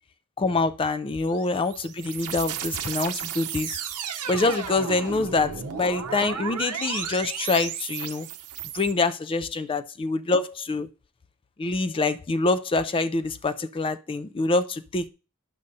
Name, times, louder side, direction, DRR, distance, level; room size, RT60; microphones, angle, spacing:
voice 1, 0.4-3.8 4.3-8.3 8.7-10.9 11.6-15.1, left 3 dB, 25° left, 0.3 m, -25 dB
sound 1, 1.3-8.9, right 8 dB, 90° right, 0.7 m, -34 dB
9.5 x 6.6 x 2.6 m
head